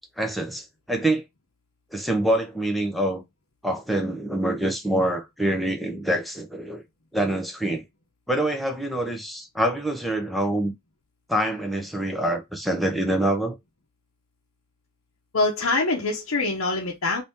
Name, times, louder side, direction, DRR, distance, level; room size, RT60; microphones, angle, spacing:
voice 1, 0.2-1.2 1.9-3.2 3.6-6.8 7.1-7.8 8.3-10.7 11.3-13.6, right 1 dB, ahead, 0.6 m, -25 dB
voice 2, 15.3-17.2, left 3 dB, 75° left, 0.7 m, -24 dB
2.8 x 2.7 x 3.5 m
head